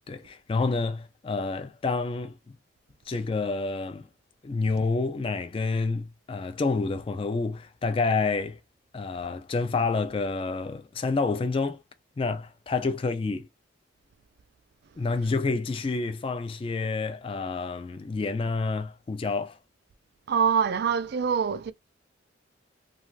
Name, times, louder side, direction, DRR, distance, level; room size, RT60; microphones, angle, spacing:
voice 1, 0.1-2.4 3.1-4.1 4.4-8.6 8.9-11.8 12.2-13.5 15.0-19.6, left 3 dB, 30° left, 0.3 m, -28 dB
voice 2, 20.3-21.7, right 7 dB, 55° right, 0.3 m, -24 dB
3.1 x 2.3 x 2.4 m
head